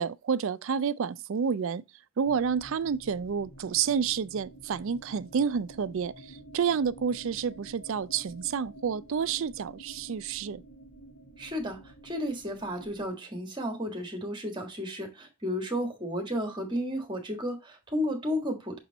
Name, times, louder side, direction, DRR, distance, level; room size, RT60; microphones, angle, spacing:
voice 1, 0.0-1.8 2.2-10.6, right 6 dB, 60° right, 0.4 m, -29 dB
sound 1, 2.2-13.1, right 1 dB, 60° left, 4.5 m, -50 dB
voice 2, 11.4-18.8, equal, 20° right, 1.6 m, -33 dB
6.1 x 4.4 x 3.9 m
head